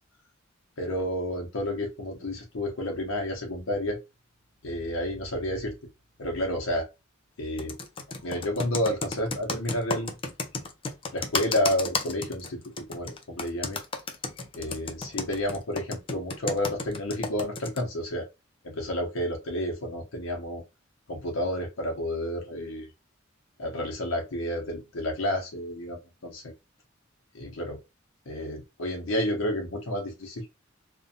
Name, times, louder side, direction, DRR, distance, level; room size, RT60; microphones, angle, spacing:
voice 1, 0.8-4.0 4.6-5.7 6.2-6.9 7.4-7.8 8.2-10.1 11.1-13.8 14.5-18.3 18.6-20.6 21.1-22.9 23.6-26.4 27.3-27.8 28.3-30.5, left 1 dB, 90° left, 0.6 m, -30 dB
Computer keyboard, 7.6-17.8, left 4 dB, 25° left, 0.4 m, -33 dB
2.5 x 2.2 x 2.6 m
head